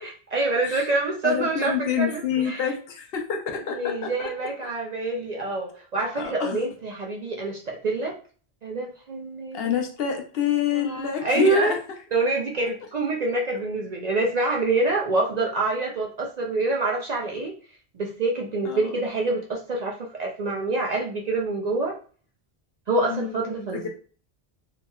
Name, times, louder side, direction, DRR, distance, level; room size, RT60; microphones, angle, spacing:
voice 1, 0.0-2.7 3.7-8.2 8.6-9.8 10.7-11.7 12.1-17.5 17.9-22.0 22.9-23.9, right 2 dB, 55° right, -1 dB, 0.5 m, -26 dB
voice 2, 1.2-4.3 6.1-6.6 9.5-11.8 18.6-18.8 22.9-23.9, left 8 dB, 70° left, 4 dB, 0.8 m, -27 dB
3.0 x 2.8 x 2.2 m, 0.41 s
omnidirectional pair, 1.1 m